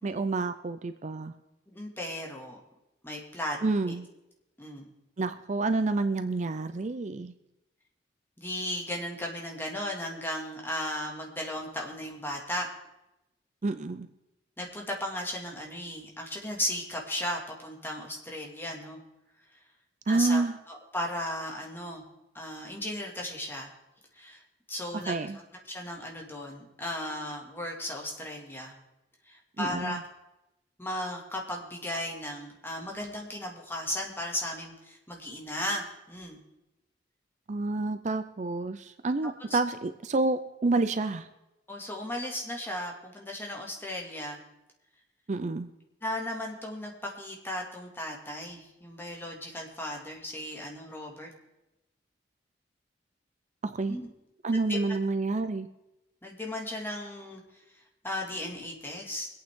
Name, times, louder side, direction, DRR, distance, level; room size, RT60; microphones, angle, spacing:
voice 1, 0.0-1.3 3.6-4.1 5.2-7.3 13.6-14.1 20.1-20.5 24.9-25.4 29.6-30.0 37.5-41.3 45.3-45.7 53.6-54.0 54.4-55.7, right 3 dB, 40° right, 10 dB, 0.5 m, -29 dB
voice 2, 1.7-2.6 3.0-3.6 3.9-4.0 4.6-4.8 8.4-12.7 13.7-13.9 14.6-19.0 20.1-22.0 22.3-23.7 24.1-24.4 24.7-25.2 25.7-28.8 29.3-30.0 30.8-36.4 39.5-39.6 41.7-44.4 46.0-51.3 53.9-54.1 54.7-54.8 56.2-57.4 58.0-59.3, left 1 dB, 15° left, -1 dB, 2.1 m, -36 dB
24.0 x 8.8 x 3.7 m, 0.93 s
head